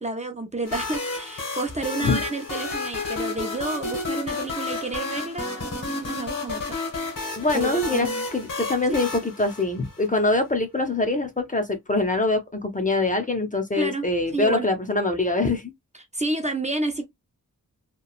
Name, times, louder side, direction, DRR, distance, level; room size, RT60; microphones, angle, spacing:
voice 1, 0.0-6.8 7.5-8.2 13.8-14.1 14.3-14.7 15.9-17.0, right 2 dB, 20° right, 0.6 m, -30 dB
sound 1, 0.7-10.3, left 3 dB, 70° left, 1.6 m, -31 dB
voice 2, 7.4-15.7, left 2 dB, 25° left, 0.6 m, -24 dB
3.0 x 2.3 x 2.3 m
wide cardioid pair, 125°, 34 cm